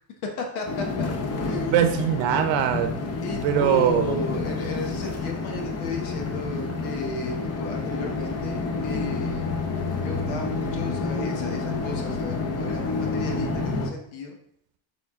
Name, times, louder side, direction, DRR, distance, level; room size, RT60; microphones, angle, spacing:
voice 1, 0.4-1.1 1.4-2.1 3.2-9.6 10.0-14.4, left 3 dB, 85° left, 2 dB, 1.2 m, -34 dB
sound 1, 0.7-13.9, left 3 dB, 30° left, 0.9 m, -29 dB
voice 2, 1.7-4.2, right 10 dB, 70° right, 8 dB, 0.7 m, -23 dB
7.1 x 3.7 x 3.6 m, 0.69 s
cardioid pair, 110°, 46 cm